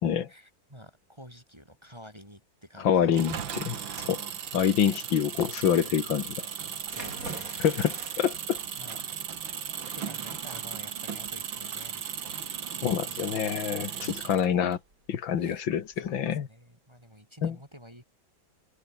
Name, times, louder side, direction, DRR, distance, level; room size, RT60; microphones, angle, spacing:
voice 1, 0.3-3.1 4.5-4.7 6.7-7.7 8.7-9.0 9.9-12.8 13.1-13.3 14.2-14.4 15.4-15.6 16.0-18.0, equal, 15° right, 6.7 m, -50 dB
voice 2, 2.8-4.2 4.5-6.5 7.6-8.6 12.8-14.8 15.1-16.5 17.4-17.6, left 8 dB, 85° left, 2.3 m, -26 dB
Engine, 3.1-14.8, right 8 dB, 80° right, 2.5 m, -37 dB
sound 1, 6.9-16.1, right 2 dB, 45° right, 7.4 m, -48 dB
omnidirectional pair, 2.1 m